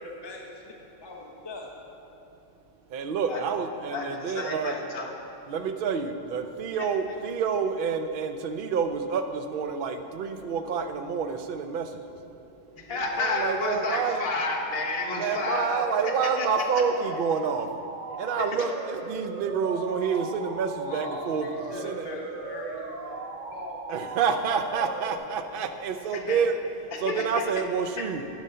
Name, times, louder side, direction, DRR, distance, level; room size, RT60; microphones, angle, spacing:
voice 1, 0.0-0.7 1.0-1.7 12.9-13.0 20.9-23.7, left 2 dB, 25° left, -2 dB, 0.7 m, -41 dB
voice 2, 2.9-4.8 5.5-11.9 13.1-14.2 15.2-17.7 18.2-22.1 23.9-26.6 27.0-28.3, right 6 dB, 55° right, 7 dB, 0.6 m, -28 dB
voice 3, 3.9-5.1 12.8-16.5 26.1-26.4 26.9-27.2 28.0-28.1, left 3 dB, 50° left, 0 dB, 1.2 m, -31 dB
sound 1, 13.2-25.2, right 3 dB, 80° right, 1.1 m, -38 dB
10.5 x 5.3 x 5.5 m, 2.8 s
omnidirectional pair, 1.3 m